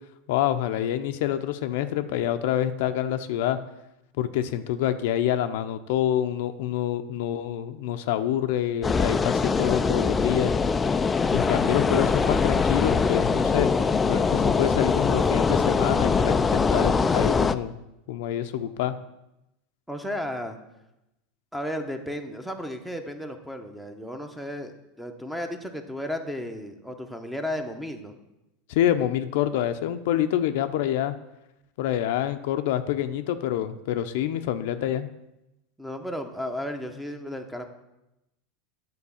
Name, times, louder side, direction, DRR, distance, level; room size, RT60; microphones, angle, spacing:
voice 1, 0.3-3.6 4.2-10.5 11.3-13.7 14.1-17.7 18.1-19.0 28.7-31.1 31.8-35.1, left 11 dB, 70° left, 9 dB, 0.6 m, -26 dB
sound 1, 8.8-17.6, left 5 dB, 15° left, 0.3 m, -23 dB
voice 2, 19.9-20.6 21.5-28.2 35.8-37.7, left 1 dB, ahead, 6 dB, 0.8 m, -34 dB
9.8 x 3.9 x 7.0 m, 0.91 s
supercardioid pair, 140°, 0 cm